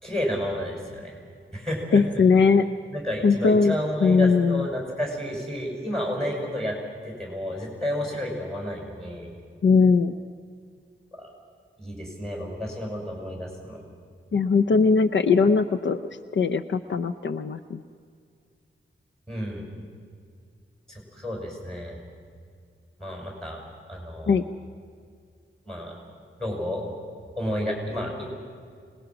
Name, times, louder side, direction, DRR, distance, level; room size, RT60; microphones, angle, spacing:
voice 1, 0.0-1.2 1.5-2.0 2.9-6.8 7.0-9.3 11.1-11.3 11.8-13.8 19.3-19.6 20.9-22.0 23.0-23.6 23.9-24.4 25.7-26.0 26.4-26.9 27.4-28.2, equal, 5° left, -1 dB, 6.0 m, -31 dB
voice 2, 1.9-2.7 3.2-3.8 4.0-4.7 9.6-10.1 14.3-16.0 16.3-17.8 24.3-24.4, left 4 dB, 65° left, 11 dB, 0.6 m, -20 dB
26.0 x 19.5 x 6.0 m, 2.2 s
wide cardioid pair, 145°, 20 cm